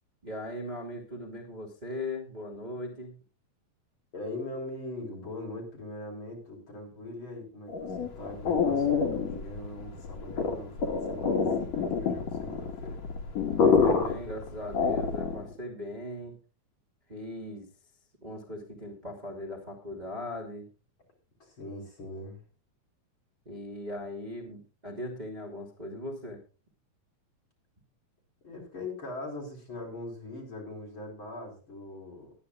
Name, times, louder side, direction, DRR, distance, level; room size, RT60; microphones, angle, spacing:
voice 1, 0.2-3.1 13.5-16.4 17.1-17.7 18.2-20.7 23.4-26.4, left 1 dB, 15° right, -1 dB, 2.6 m, -39 dB
voice 2, 4.1-13.0 21.4-22.4 28.4-32.3, left 2 dB, 40° left, 1 dB, 5.1 m, -41 dB
sound 1, 7.7-15.5, left 5 dB, 65° left, 2.9 m, -27 dB
22.0 x 10.0 x 2.4 m, 0.35 s
omnidirectional pair, 3.3 m